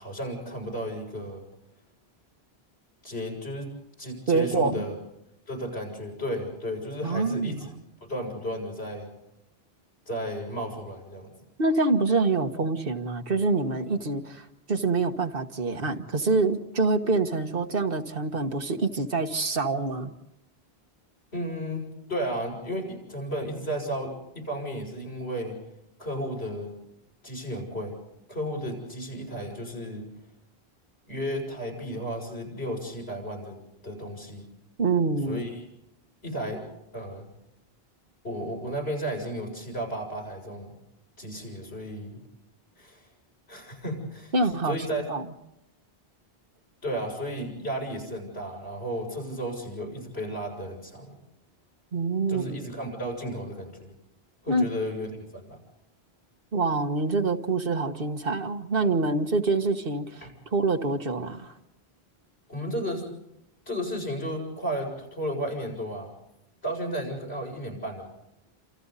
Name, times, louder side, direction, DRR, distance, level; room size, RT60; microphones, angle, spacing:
voice 1, 0.0-1.4 3.0-3.7 4.0-5.0 5.5-7.7 8.0-9.1 10.1-11.3 21.3-21.8 22.1-25.6 26.0-26.7 27.2-28.0 28.3-30.1 31.1-33.6 33.8-34.5 35.3-35.7 36.2-36.6 36.9-37.3 38.2-40.8 41.2-42.2 42.8-43.1 43.5-44.4 44.7-45.1 46.8-51.1 52.3-53.9 54.4-55.6 60.2-60.3 62.5-63.0 63.7-66.1 66.6-68.0, equal, 90° left, 0 dB, 7.3 m, -33 dB
voice 2, 4.3-4.9 7.0-7.6 11.6-20.1 34.8-35.4 44.3-44.8 45.1-45.2 51.9-52.6 54.5-54.7 56.5-61.5, right 3 dB, 65° right, 5 dB, 1.6 m, -26 dB
29.5 x 27.5 x 4.1 m, 0.86 s
omnidirectional pair, 1.0 m